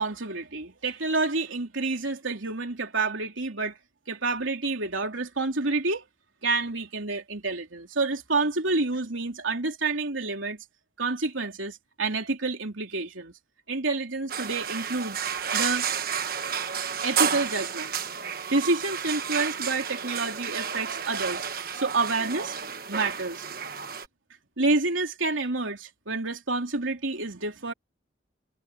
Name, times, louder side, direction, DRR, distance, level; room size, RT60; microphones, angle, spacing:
voice 1, 0.0-3.7 4.1-6.0 6.4-10.6 11.0-13.3 13.7-15.3 15.5-15.9 17.0-17.9 18.5-21.5 21.7-22.5 22.9-23.4 24.6-27.7, right 3 dB, 90° right, 3.5 m, -28 dB
sound 1, 14.3-24.1, right 7 dB, 50° right, 1.4 m, -31 dB
head